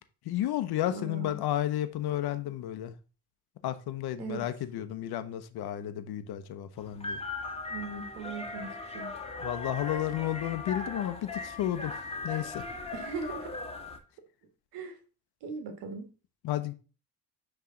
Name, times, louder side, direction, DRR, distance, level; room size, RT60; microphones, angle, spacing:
voice 1, 0.3-2.9 3.6-7.2 9.4-11.9 12.2-12.6 16.4-16.7, left 12 dB, 70° left, 0.8 m, -32 dB
voice 2, 0.9-1.4 4.2-4.4 7.7-9.1 12.9-13.5 14.7-15.0 15.4-16.1, right 4 dB, 85° right, 1.5 m, -39 dB
sound 1, 6.8-14.0, left 3 dB, 15° left, 1.5 m, -38 dB
9.2 x 3.4 x 3.7 m
supercardioid pair, 65°, 39 cm